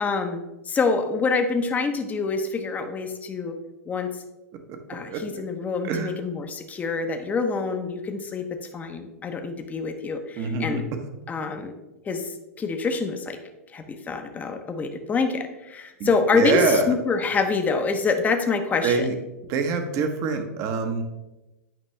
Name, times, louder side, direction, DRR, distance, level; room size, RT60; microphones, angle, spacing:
voice 1, 0.0-3.6 3.9-4.2 4.9-8.5 8.7-10.8 11.3-11.7 12.0-13.4 13.7-19.2, left 4 dB, 20° left, 6 dB, 0.8 m, -26 dB
voice 2, 5.1-5.4 5.8-6.1 10.4-10.8 16.0-16.1 16.3-16.8 18.8-19.1 19.5-21.0, right 5 dB, 40° right, 6 dB, 1.1 m, -25 dB
9.2 x 5.3 x 3.2 m, 1.0 s
figure-of-eight pair, 100°, 8 cm